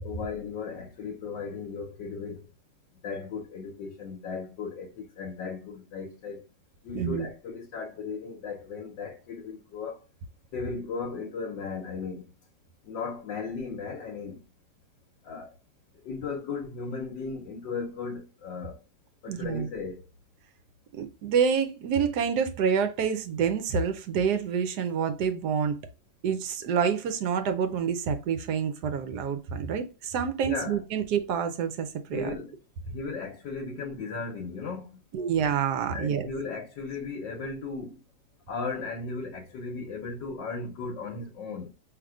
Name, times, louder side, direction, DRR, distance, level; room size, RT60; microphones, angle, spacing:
voice 1, 0.0-2.5 3.0-6.4 6.8-10.0 10.5-12.2 12.8-14.4 15.2-15.6 15.9-18.8 19.2-20.1 30.4-30.8 32.1-32.6 32.9-35.0 35.9-38.0 38.5-41.8, left 4 dB, 80° left, 1.5 m, -36 dB
voice 2, 6.9-7.3 19.3-19.7 20.9-25.8 26.2-32.3 35.1-36.3, right 7 dB, 75° right, 1.1 m, -27 dB
5.0 x 3.2 x 2.3 m
omnidirectional pair, 1.9 m